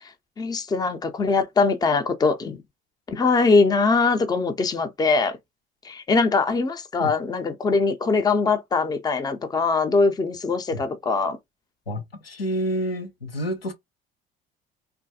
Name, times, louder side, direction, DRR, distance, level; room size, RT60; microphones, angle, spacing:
voice 1, 0.4-2.6 3.1-5.4 5.8-11.4, left 4 dB, 15° left, 0.5 m, -22 dB
voice 2, 11.9-13.7, equal, 90° left, 0.5 m, -29 dB
3.3 x 2.2 x 2.6 m
figure-of-eight pair, 55°, 29 cm